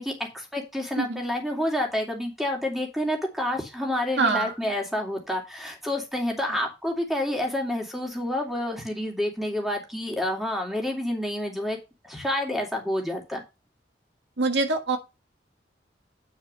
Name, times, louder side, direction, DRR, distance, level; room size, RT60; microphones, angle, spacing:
voice 1, 0.0-11.8 12.0-13.4, left 1 dB, ahead, 2.4 m, -29 dB
voice 2, 4.2-4.5 14.4-15.0, right 3 dB, 85° right, 1.6 m, -24 dB
9.4 x 5.0 x 5.5 m
head